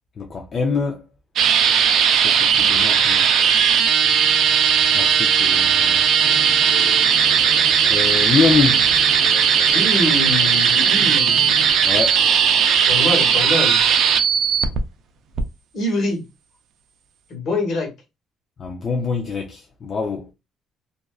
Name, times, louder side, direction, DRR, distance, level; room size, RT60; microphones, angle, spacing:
voice 1, 0.2-1.0 2.2-3.3 4.9-6.1 6.9-8.8 11.8-12.2 18.6-20.3, left 5 dB, 45° left, 0.4 m, -25 dB
sound 1, 1.4-14.8 15.4-15.5, right 7 dB, 65° right, 0.4 m, -17 dB
sound 2, 6.2-11.7, left 4 dB, 80° left, 0.7 m, -36 dB
voice 2, 9.7-11.4 12.9-13.8 15.7-16.2 17.3-17.9, left 2 dB, 65° left, 1.1 m, -24 dB
2.5 x 2.3 x 2.3 m
cardioid pair, 105°, 0 cm